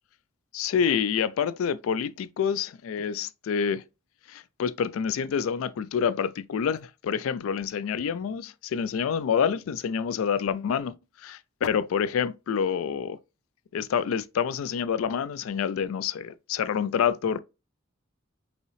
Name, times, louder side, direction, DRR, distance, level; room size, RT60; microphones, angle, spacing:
voice 1, 0.5-3.8 4.3-10.9 11.2-13.2 13.7-17.4, left 7 dB, 80° left, 0.3 m, -27 dB
5.4 x 2.9 x 3.0 m
head